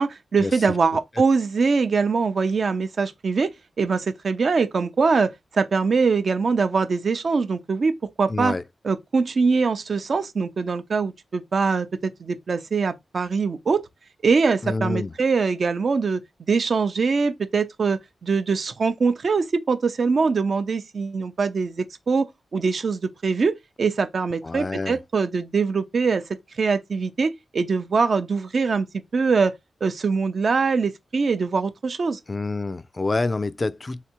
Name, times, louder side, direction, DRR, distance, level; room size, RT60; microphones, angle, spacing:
voice 1, 0.0-3.5 3.8-8.5 8.8-13.8 14.2-16.2 16.5-26.2 26.6-29.5 29.8-32.2, right 4 dB, 65° right, 0.6 m, -23 dB
voice 2, 8.3-8.6 14.6-15.1 24.4-25.0 32.3-34.0, left 3 dB, 40° left, 0.3 m, -27 dB
3.3 x 2.8 x 2.9 m
cardioid pair, 50°, 0 cm